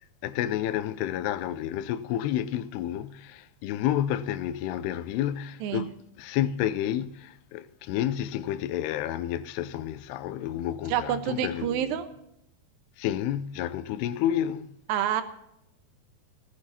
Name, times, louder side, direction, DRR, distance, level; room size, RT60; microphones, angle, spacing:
voice 1, 0.2-11.9 13.0-14.8, left 11 dB, 90° left, 2.7 m, -30 dB
voice 2, 10.9-12.1 14.9-15.2, right 9 dB, 70° right, 2.6 m, -27 dB
18.5 x 14.0 x 2.8 m
omnidirectional pair, 4.6 m